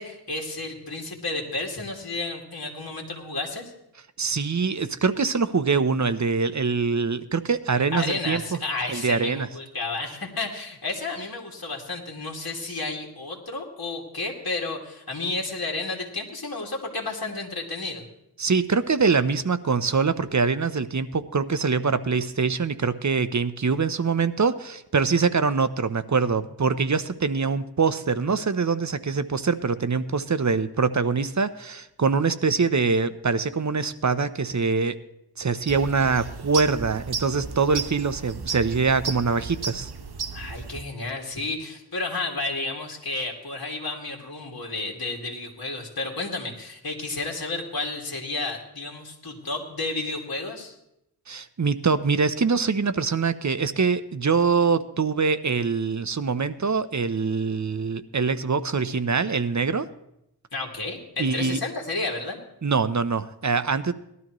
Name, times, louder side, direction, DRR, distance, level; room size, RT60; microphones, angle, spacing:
voice 1, 0.0-3.7 7.9-18.1 40.3-50.7 60.5-62.4, left 3 dB, 65° left, 0 dB, 2.4 m, -32 dB
voice 2, 4.2-8.4 8.9-9.5 18.4-35.0 35.4-39.9 51.3-59.9 61.2-61.6 62.6-63.9, right 5 dB, 45° right, 13 dB, 0.7 m, -24 dB
sound 1, 35.7-40.8, right 5 dB, 70° right, 1.0 m, -34 dB
19.0 x 12.5 x 3.1 m, 0.82 s
wide cardioid pair, 45°, 40 cm